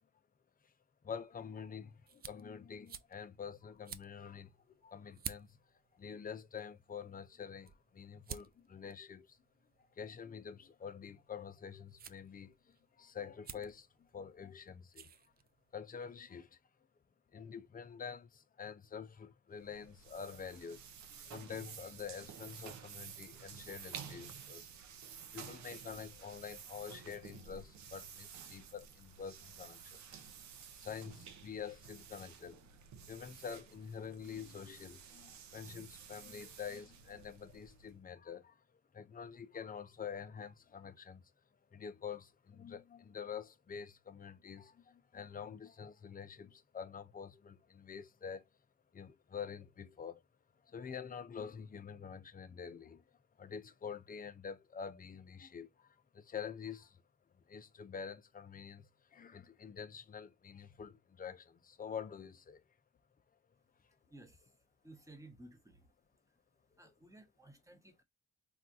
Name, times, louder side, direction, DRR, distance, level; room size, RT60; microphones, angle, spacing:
voice 1, 1.0-5.6 5.9-9.4 9.8-15.1 15.7-16.6 17.3-24.7 25.1-30.2 30.7-32.7 33.1-38.6 38.9-41.3 41.7-48.5 48.9-50.2 50.6-53.0 53.4-57.0 57.3-62.6 63.8-64.0 66.8-66.9, left 7 dB, 30° left, 0.5 m, -47 dB
sound 1, 1.1-15.9, right 8 dB, 30° right, 0.4 m, -54 dB
sound 2, 19.5-38.0, right 7 dB, 65° right, 0.7 m, -52 dB
voice 2, 64.1-64.5 64.8-65.9 66.8-68.0, right 1 dB, 10° right, 1.0 m, -57 dB
3.5 x 2.3 x 2.6 m
cardioid pair, 90°, 30 cm